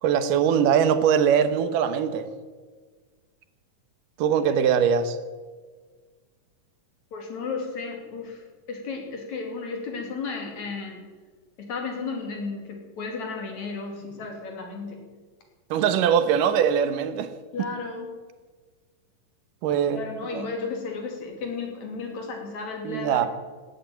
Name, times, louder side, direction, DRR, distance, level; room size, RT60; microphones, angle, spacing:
voice 1, 0.0-2.3 4.2-5.2 15.7-17.3 17.6-17.7 19.6-20.0 20.3-20.5 22.8-23.3, right 8 dB, 80° right, 11 dB, 2.6 m, -22 dB
voice 2, 7.1-11.0 11.6-15.0 16.4-16.5 17.5-18.1 19.9-23.3, left 4 dB, 60° left, 2 dB, 3.9 m, -34 dB
18.0 x 9.2 x 8.8 m, 1.4 s
omnidirectional pair, 3.8 m